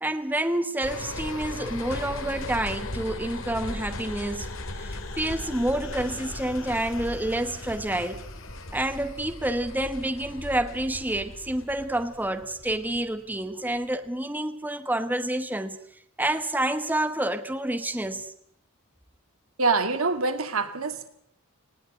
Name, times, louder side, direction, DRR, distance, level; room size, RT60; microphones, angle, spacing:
voice 1, 0.0-4.5 4.8-8.2 8.7-15.8 16.2-18.3, right 1 dB, 10° right, 1.1 m, -28 dB
sound 1, 0.8-13.4 13.8-13.9, left 2 dB, 65° left, 2.5 m, -37 dB
voice 2, 19.6-21.1, right 4 dB, 80° right, 2.1 m, -25 dB
19.5 x 17.5 x 9.0 m
head